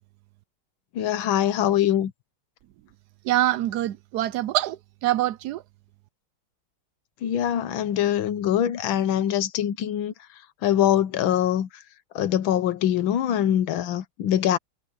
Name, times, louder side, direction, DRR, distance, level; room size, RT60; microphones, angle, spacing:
voice 1, 1.0-2.1 7.2-10.1 10.6-11.7 12.1-14.6, left 11 dB, 75° left, 1.7 m, -23 dB
voice 2, 3.3-4.8 5.0-5.6, right 14 dB, 75° right, 0.9 m, -24 dB
omnidirectional pair, 2.2 m